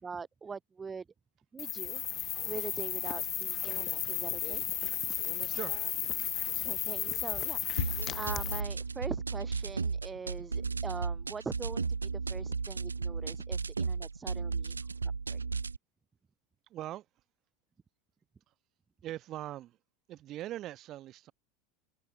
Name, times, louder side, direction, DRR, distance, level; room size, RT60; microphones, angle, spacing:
voice 1, 0.0-1.0 1.5-4.6 6.6-14.8 15.3-15.4, right 5 dB, 20° right, 0.7 m, -43 dB
sound 1, 1.6-8.6, left 11 dB, 35° left, 0.7 m, -34 dB
sound 2, 7.8-15.8, right 4 dB, 90° right, 0.5 m, -34 dB
voice 2, 16.7-17.1 19.0-19.8 20.1-21.3, right 14 dB, 40° right, 3.8 m, -41 dB
figure-of-eight pair, 85°, 0 cm